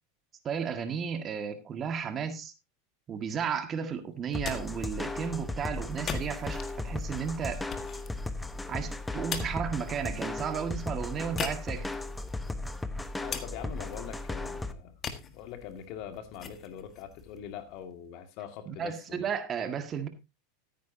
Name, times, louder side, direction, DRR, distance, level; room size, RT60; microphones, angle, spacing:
voice 1, 0.4-2.5 3.1-7.6 8.7-11.9 18.6-20.1, right 7 dB, 30° right, 8 dB, 1.7 m, -33 dB
sound 1, 4.2-18.1, left 7 dB, 30° left, 1.6 m, -43 dB
sound 2, 4.3-14.7, left 2 dB, 10° left, 1.0 m, -36 dB
voice 2, 13.2-19.3, left 9 dB, 55° left, 8 dB, 2.0 m, -43 dB
14.5 x 9.3 x 2.8 m, 0.24 s
hypercardioid pair, 105°, 0 cm